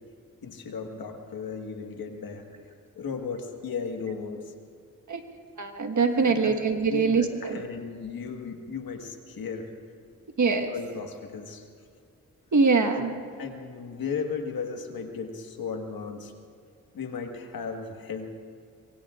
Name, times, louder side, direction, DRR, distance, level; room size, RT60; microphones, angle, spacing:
voice 1, 0.4-2.4 2.9-4.5 6.1-6.5 6.9-9.7 10.6-11.7 12.9-13.1 13.4-16.3 16.9-18.3, left 5 dB, 80° left, 4 dB, 1.7 m, -35 dB
voice 2, 5.6-7.6 10.4-10.7 12.5-13.1, right 4 dB, 55° right, 5 dB, 1.6 m, -23 dB
24.0 x 24.0 x 2.5 m, 2.2 s
cardioid pair, 55°, 35 cm